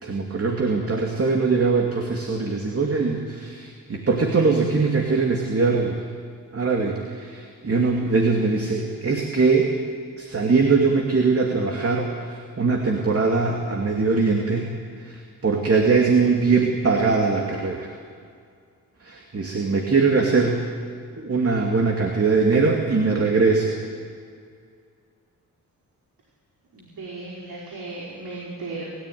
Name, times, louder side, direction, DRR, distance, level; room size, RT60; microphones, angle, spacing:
voice 1, 0.0-6.0 6.5-9.7 10.2-14.7 15.0-17.9 19.0-20.6 21.2-23.7, right 4 dB, 40° right, 1 dB, 2.7 m, -21 dB
voice 2, 26.7-29.0, right 3 dB, 80° right, -5 dB, 5.4 m, -36 dB
30.0 x 14.0 x 9.4 m, 2.2 s
cardioid pair, 85°, 35 cm